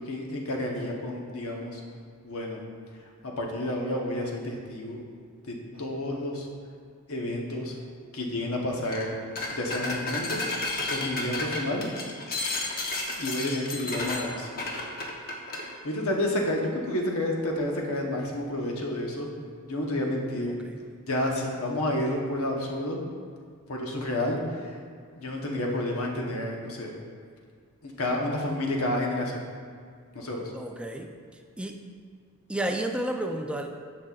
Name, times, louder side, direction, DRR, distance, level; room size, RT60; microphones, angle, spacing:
voice 1, 0.0-1.8 2.2-2.6 3.2-5.0 5.5-6.5 7.1-7.7 8.1-9.1 9.5-10.4 10.9-11.9 13.2-14.9 15.8-19.3 19.6-20.6 21.1-23.0 23.7-24.8 25.2-26.9 27.8-29.4 30.1-30.5, left 1 dB, 70° left, 0 dB, 1.1 m, -30 dB
sound 1, 8.8-9.1 9.3-15.7, left 2 dB, 45° left, 1.0 m, -32 dB
voice 2, 20.5-20.8 30.5-31.1 31.6-31.8 32.5-33.7, right 1 dB, 5° right, 3 dB, 0.4 m, -31 dB
10.5 x 6.1 x 2.4 m, 2.1 s
head